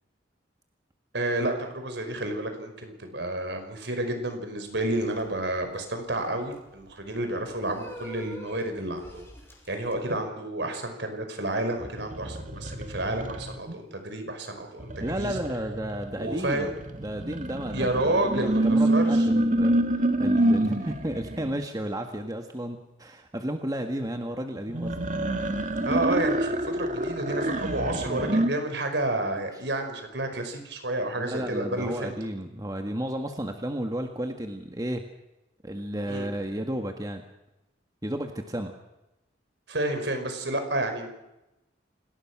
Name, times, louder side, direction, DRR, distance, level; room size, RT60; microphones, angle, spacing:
voice 1, 1.1-9.2 9.7-15.4 16.2-16.7 17.7-19.2 25.8-32.1 36.1-36.3 39.7-41.1, right 1 dB, 65° right, 6 dB, 5.2 m, -30 dB
sound 1, 4.7-9.9, right 1 dB, 15° left, 5.4 m, -46 dB
sound 2, 11.8-13.7 14.8-21.6 24.7-28.5, right 1 dB, 40° right, 2.0 m, -27 dB
voice 2, 15.0-25.0 31.1-35.1 35.6-37.2 38.0-38.7, right 1 dB, 20° right, 5 dB, 1.7 m, -33 dB
27.5 x 19.5 x 6.1 m, 0.93 s
head